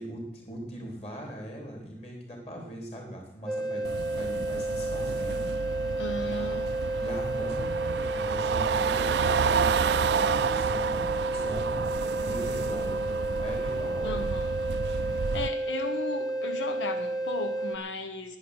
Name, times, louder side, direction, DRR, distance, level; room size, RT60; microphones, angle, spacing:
voice 1, 0.0-6.5 6.9-13.1 13.4-14.3 15.0-15.2, equal, 35° left, 3.8 m, -40 dB
sound 1, 3.5-17.8, right 1 dB, ahead, 1.0 m, -31 dB
sound 2, 3.8-15.5, right 6 dB, 70° right, 0.4 m, -30 dB
voice 2, 6.0-6.9 14.0-14.5 15.2-18.4, left 2 dB, 90° left, 0.9 m, -36 dB
10.5 x 10.0 x 8.0 m
head